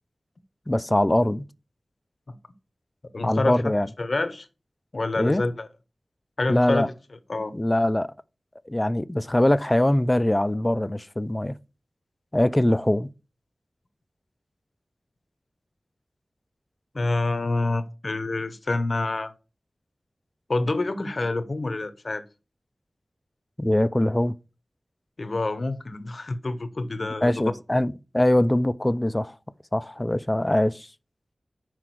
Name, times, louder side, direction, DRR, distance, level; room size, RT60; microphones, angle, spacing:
voice 1, 0.7-1.4 3.2-3.9 5.2-5.4 6.5-6.9 7.5-8.1 8.7-11.5 12.3-13.1 23.6-24.4 27.2-29.4 29.7-30.9, left 1 dB, 20° left, 0.4 m, -22 dB
voice 2, 3.1-3.7 4.0-4.5 4.9-5.7 6.4-6.9 7.3-7.5 16.9-19.3 20.5-22.2 25.2-27.5, left 2 dB, 60° left, 0.7 m, -27 dB
6.0 x 4.8 x 4.6 m
wide cardioid pair, 50°, 0 cm